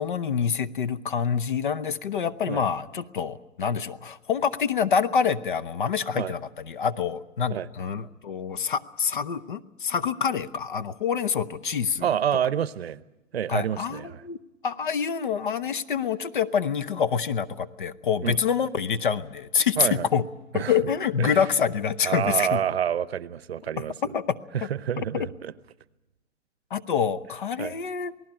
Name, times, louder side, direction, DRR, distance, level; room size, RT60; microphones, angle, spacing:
voice 1, 0.0-12.1 13.5-14.4 14.6-20.2 20.5-22.6 23.8-23.9 24.1-24.7 25.0-25.3 26.7-28.1, left 7 dB, 40° left, 0.8 m, -26 dB
voice 2, 12.0-13.0 13.3-14.2 18.2-18.4 19.8-20.1 20.5-20.7 21.2-21.4 22.0-24.1 24.5-25.5 27.6-27.7, right 9 dB, 55° right, 0.9 m, -28 dB
27.5 x 19.0 x 8.8 m
hypercardioid pair, 175°, 38 cm